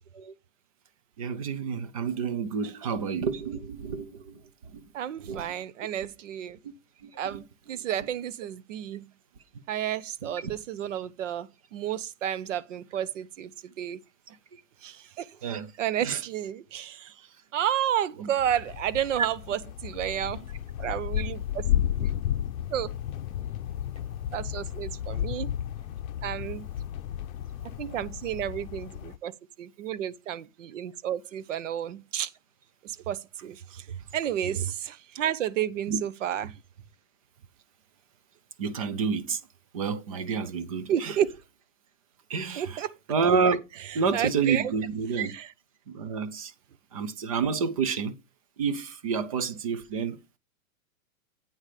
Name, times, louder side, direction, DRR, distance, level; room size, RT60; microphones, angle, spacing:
voice 1, 1.2-4.4 4.7-4.8 5.2-5.5 6.6-6.7 7.0-7.4 10.2-10.5 14.3-14.4 15.4-15.7 16.0-16.2 18.2-18.3 35.9-36.0 38.6-39.4 39.7-41.1 42.3-42.8 43.1-43.6 43.9-45.3 45.9-46.5 46.9-48.1 48.6-50.2, right 5 dB, 25° right, 0.5 m, -29 dB
voice 2, 2.6-3.0 4.9-6.6 7.2-9.1 9.7-14.0 14.8-15.3 15.8-17.1 17.5-20.5 20.8-21.7 22.0-22.1 22.7-23.0 24.3-25.5 26.2-26.7 27.6-29.3 29.6-32.3 32.8-36.6 40.9-41.4 42.6-43.0 43.7-44.7 45.1-45.5, right 10 dB, 55° right, 0.8 m, -31 dB
sound 1, 18.4-29.2, left 10 dB, 70° left, 0.7 m, -33 dB
8.8 x 4.9 x 5.7 m
hypercardioid pair, 165°, 43 cm